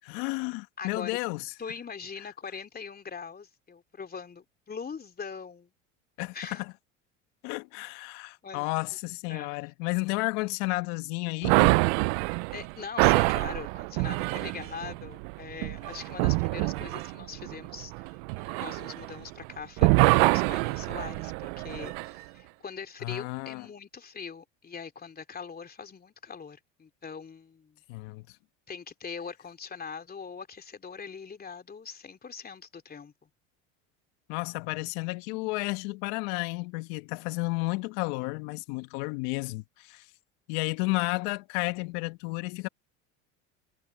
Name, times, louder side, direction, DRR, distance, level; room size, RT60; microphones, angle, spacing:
voice 1, 0.0-1.4 2.2-2.3 6.2-6.7 7.4-11.8 23.0-23.7 27.9-28.4 34.3-40.1 40.5-42.7, left 25 dB, 70° left, 1.3 m, -32 dB
voice 2, 0.8-1.1 1.6-5.7 6.3-6.6 8.4-8.7 9.3-9.6 12.5-27.8 28.7-33.1, left 5 dB, 25° left, 3.1 m, -42 dB
sound 1, 11.4-19.5 19.8-22.1, right 28 dB, 70° right, 0.6 m, -26 dB
hypercardioid pair, 85°, 36 cm